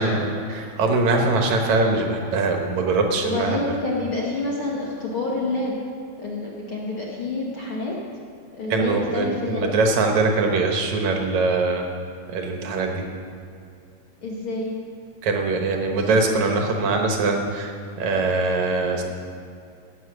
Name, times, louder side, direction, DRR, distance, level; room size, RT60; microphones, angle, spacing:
voice 1, 0.0-3.6 8.7-11.9 12.3-13.0 15.2-19.0, right 3 dB, 65° right, 2 dB, 2.0 m, -22 dB
voice 2, 3.2-5.7 6.2-7.9 8.5-9.7 14.2-14.7, left 2 dB, 70° left, -4 dB, 1.2 m, -28 dB
16.5 x 8.4 x 6.2 m, 2.4 s
omnidirectional pair, 4.5 m